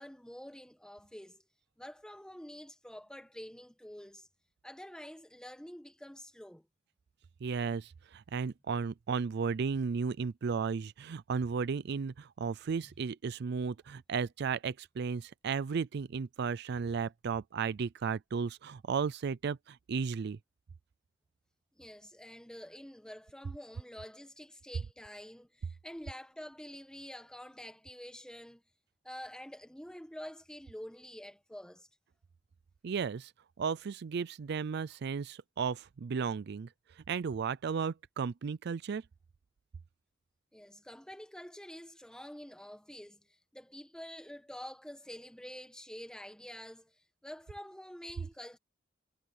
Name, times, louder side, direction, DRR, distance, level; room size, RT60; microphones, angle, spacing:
voice 1, 0.0-1.4 1.8-4.3 4.6-6.7 12.8-12.9 21.8-28.6 29.0-31.9 40.5-48.6, equal, 5° left, 1.4 m, -48 dB
voice 2, 7.4-20.4 32.8-33.3 33.6-36.7 37.0-39.0, right 5 dB, 60° right, 0.4 m, -34 dB
head